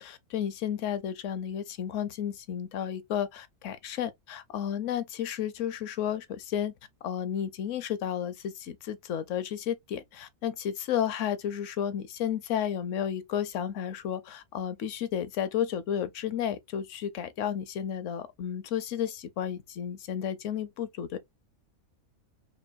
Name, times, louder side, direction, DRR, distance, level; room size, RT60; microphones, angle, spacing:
voice 1, 0.0-6.7 7.0-21.2, left 9 dB, 65° left, 0.9 m, -32 dB
5.3 x 2.3 x 2.4 m
omnidirectional pair, 1.5 m